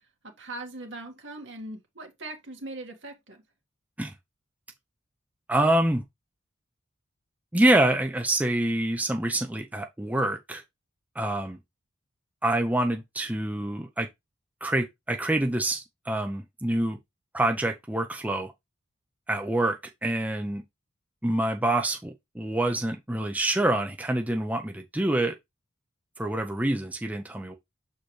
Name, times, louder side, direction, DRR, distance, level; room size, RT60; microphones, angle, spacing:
voice 1, 0.2-3.4, right 2 dB, 70° right, 1.8 m, -40 dB
voice 2, 5.5-6.0 7.5-10.6 11.2-11.6 12.4-14.1 14.6-17.0 17.3-18.5 19.3-20.6 21.2-25.3 26.2-27.6, right 1 dB, 10° right, 0.6 m, -26 dB
6.8 x 4.4 x 3.2 m
head